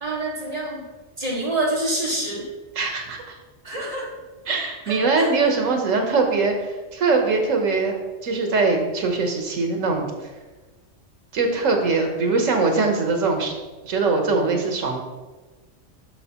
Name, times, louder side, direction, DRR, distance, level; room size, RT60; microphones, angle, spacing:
voice 1, 0.0-0.8 1.2-2.4 3.6-4.1 4.9-5.5, right 1 dB, 30° right, -5 dB, 2.0 m, -27 dB
voice 2, 2.7-3.4 4.5-8.0 8.2-10.1 11.3-13.5 13.8-15.0, right 3 dB, 80° right, 3 dB, 1.4 m, -22 dB
7.7 x 6.2 x 3.0 m, 1.2 s
omnidirectional pair, 1.3 m